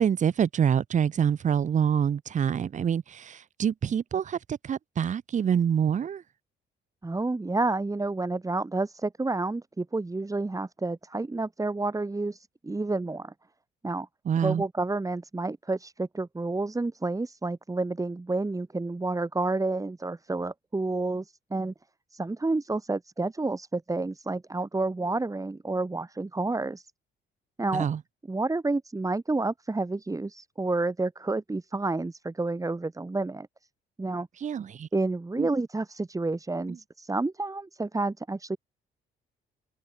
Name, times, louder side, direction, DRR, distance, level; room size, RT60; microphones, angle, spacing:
voice 1, 0.0-4.4 4.6-6.2 14.3-14.6 27.7-28.0 34.4-34.9 35.4-35.5, right 8 dB, 40° right, 0.6 m, -26 dB
voice 2, 7.0-13.3 13.8-14.1 14.4-21.7 22.1-26.9 27.6-27.9 28.3-33.5 34.0-34.3 34.9-38.6, right 2 dB, 15° right, 1.8 m, -30 dB
cardioid pair, 90°, 20 cm